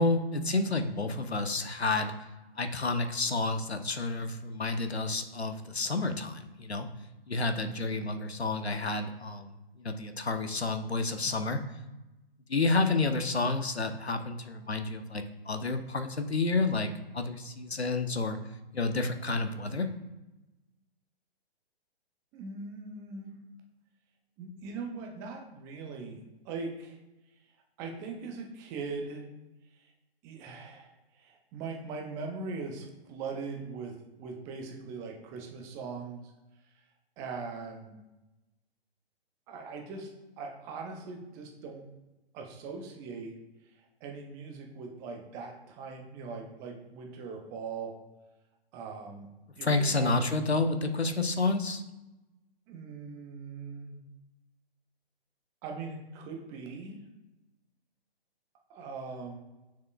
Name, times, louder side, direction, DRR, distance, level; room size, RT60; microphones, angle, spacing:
voice 1, 0.0-2.1 2.5-6.9 7.3-11.6 12.5-18.4 18.7-19.9 49.6-51.8, left 3 dB, 90° left, 8 dB, 0.8 m, -30 dB
voice 2, 22.3-23.3 24.4-27.0 27.8-29.2 29.8-29.9 30.2-36.2 37.2-38.0 39.5-40.1 40.4-41.8 42.3-43.3 44.0-47.9 48.7-49.3 49.6-50.1 52.7-54.0 55.6-57.0 58.7-59.4, right 4 dB, 10° right, 2 dB, 0.4 m, -40 dB
6.6 x 6.5 x 2.3 m, 1.0 s
figure-of-eight pair, 130°, 31 cm